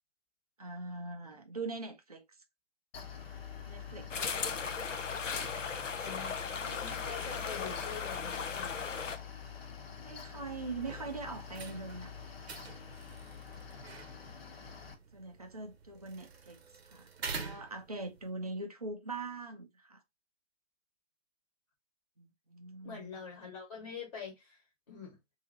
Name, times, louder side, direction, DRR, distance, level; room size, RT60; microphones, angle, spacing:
voice 1, 0.6-2.2 3.7-4.1 10.0-12.1 12.5-12.7 14.8-16.6 16.9-20.0 22.2-23.1, right 3 dB, 30° right, 0.4 m, -42 dB
Mechanical fan, 2.9-14.9, left 7 dB, 50° left, 0.9 m, -46 dB
sound 1, 4.1-9.2, left 5 dB, 70° left, 0.7 m, -37 dB
voice 2, 6.0-9.0 22.8-24.6 24.9-25.2, left 6 dB, 20° left, 1.2 m, -45 dB
sound 2, 10.8-18.3, right 5 dB, 55° right, 0.7 m, -47 dB
2.9 x 2.7 x 3.7 m
figure-of-eight pair, 145°, 39 cm